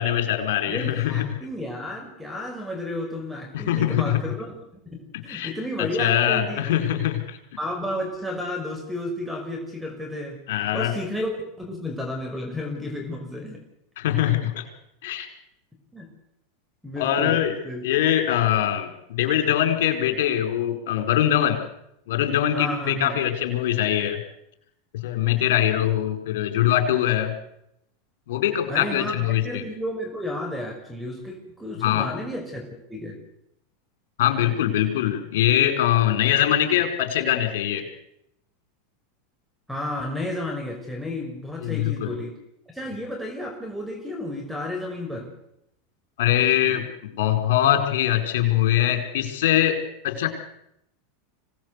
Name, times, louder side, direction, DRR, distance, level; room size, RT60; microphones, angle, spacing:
voice 1, 0.0-1.2 3.5-4.2 5.3-5.5 5.8-7.4 10.5-10.9 14.0-14.6 15.0-15.3 17.0-17.5 17.8-21.6 22.1-24.2 25.0-27.3 28.3-29.6 31.8-32.1 34.2-37.8 41.6-42.1 46.2-49.8 50.0-50.3, left 11 dB, 70° left, 7 dB, 4.5 m, -22 dB
voice 2, 0.7-4.5 4.9-6.8 7.6-10.4 10.7-13.6 15.9-16.1 16.8-17.4 17.6-17.8 22.5-23.2 28.7-33.2 39.7-42.4 42.7-45.3, left 1 dB, ahead, 3 dB, 5.5 m, -32 dB
26.0 x 18.0 x 8.2 m, 0.80 s
hypercardioid pair, 95°, 0 cm